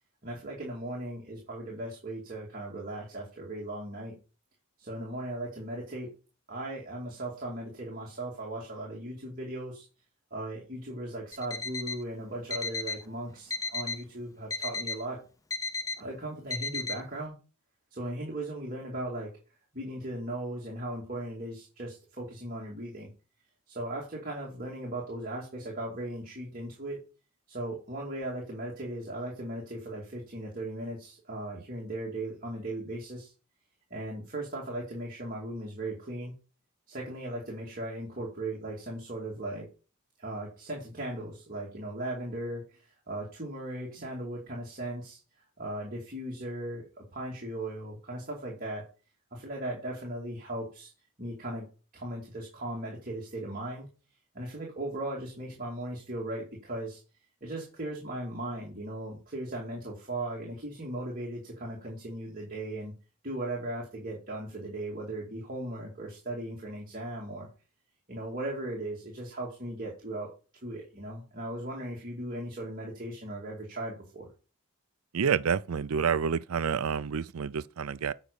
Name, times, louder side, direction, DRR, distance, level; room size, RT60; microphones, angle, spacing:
voice 1, 0.2-4.1 4.8-6.1 6.5-9.9 10.3-15.2 16.0-17.4 17.9-19.3 19.7-23.1 23.7-27.0 27.5-33.3 33.9-36.3 36.9-39.7 40.2-42.6 43.1-45.2 45.6-48.8 49.3-50.9 51.2-51.7 51.9-53.9 54.3-57.0 57.4-62.9 63.2-67.5 68.1-70.3 70.6-74.3, right 1 dB, 40° right, 2.5 m, -37 dB
Alarm, 11.3-12.0 12.5-13.0 13.5-14.0 14.5-15.0 15.5-16.0 16.5-17.0, left 4 dB, 15° left, 0.4 m, -34 dB
voice 2, 75.1-78.1, right 6 dB, 80° right, 0.5 m, -28 dB
8.0 x 5.0 x 6.8 m
head